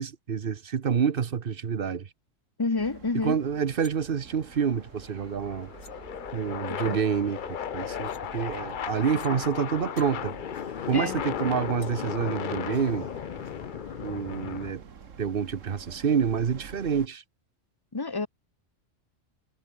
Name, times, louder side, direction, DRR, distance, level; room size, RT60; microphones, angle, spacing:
voice 1, 0.0-2.1 3.2-5.7 6.3-10.4 10.9-13.1 14.0-14.8 15.2-17.2, right 7 dB, 50° right, 1.1 m, -28 dB
voice 2, 2.6-3.4 6.7-7.0 9.3-9.4 10.9-11.2 17.9-18.3, left 3 dB, 20° left, 0.9 m, -29 dB
sound 1, 2.8-17.1, right 6 dB, 80° right, 1.9 m, -48 dB
sound 2, 2.9-3.0 3.3-3.9 5.3-5.4 5.8-5.9 6.9-7.1 7.9-8.2 9.2-9.3 9.7-10.1 11.8-11.9, left 3 dB, 80° left, 3.5 m, -53 dB
sound 3, 4.3-14.7, left 9 dB, 50° left, 0.7 m, -35 dB
omnidirectional pair, 1.3 m